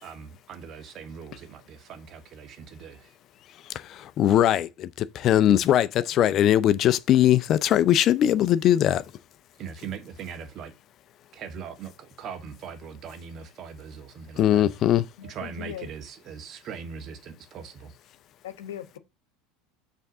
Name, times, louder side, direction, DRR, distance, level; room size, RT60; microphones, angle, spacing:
voice 1, 0.0-3.1 9.6-10.7 11.3-14.6 15.2-17.9, right 6 dB, 50° right, 1.6 m, -40 dB
voice 2, 4.2-9.0 14.4-15.0, left 11 dB, 50° left, 0.6 m, -20 dB
voice 3, 15.2-15.9 18.4-19.0, left 11 dB, 85° left, 1.1 m, -39 dB
6.8 x 3.6 x 6.0 m
hypercardioid pair, 95°, 0 cm